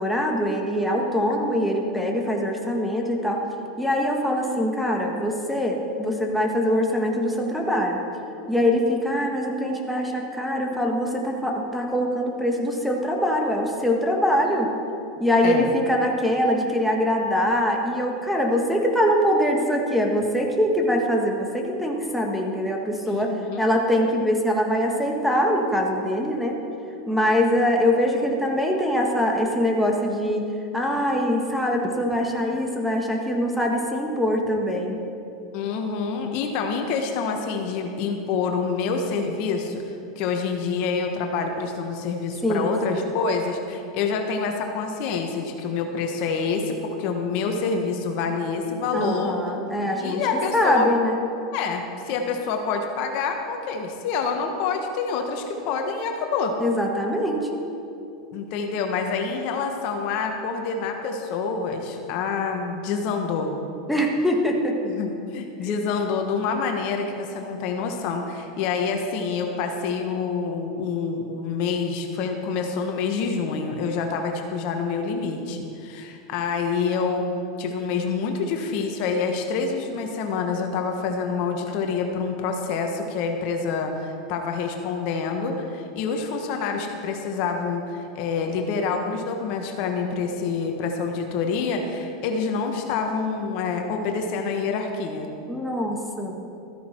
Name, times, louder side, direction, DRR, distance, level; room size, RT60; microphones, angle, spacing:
voice 1, 0.0-3.4 3.8-8.0 8.5-14.7 15.2-26.5 27.1-30.4 30.7-35.0 42.4-43.0 48.9-50.2 50.5-51.2 56.6-57.6 63.9-64.9 65.6-65.8 95.5-96.4, equal, ahead, -1 dB, 1.6 m, -23 dB
voice 2, 23.1-23.6 35.5-49.4 50.0-50.9 51.5-56.5 58.3-63.6 64.8-77.3 77.6-95.3, left 5 dB, 55° left, 4 dB, 1.3 m, -27 dB
13.5 x 10.0 x 4.5 m, 2.6 s
hypercardioid pair, 100°, 2 cm